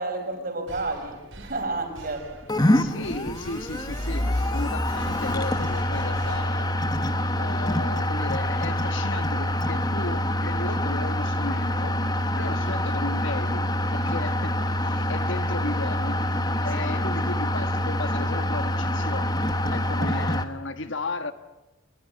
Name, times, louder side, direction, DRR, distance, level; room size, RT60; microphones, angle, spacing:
voice 1, 0.0-2.3 16.7-16.8, right 2 dB, 45° right, 4.9 m, -31 dB
sound 1, 0.7-7.0, right 1 dB, 65° right, 4.3 m, -43 dB
sound 2, 2.5-20.5, left 1 dB, 20° left, 1.2 m, -26 dB
voice 2, 2.7-6.7 7.4-11.9 12.4-13.6 13.9-16.2 16.6-19.4 19.6-21.3, left 2 dB, 60° left, 1.4 m, -35 dB
24.0 x 20.5 x 9.6 m
head